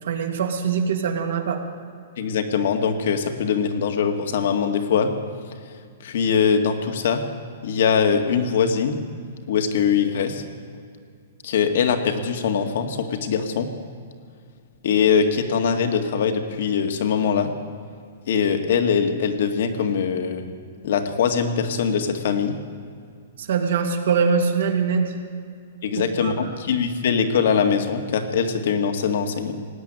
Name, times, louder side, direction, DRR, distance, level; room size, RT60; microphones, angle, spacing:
voice 1, 0.0-1.6 23.4-25.1 26.2-26.5, right 6 dB, 70° right, 4 dB, 2.1 m, -23 dB
voice 2, 2.2-5.1 6.0-7.2 7.6-9.0 9.5-10.4 11.4-13.7 14.8-17.5 18.3-20.5 20.8-22.5 25.8-29.5, left 6 dB, 65° left, 6 dB, 1.8 m, -22 dB
18.5 x 8.4 x 9.1 m, 2.2 s
hypercardioid pair, 145°, 0 cm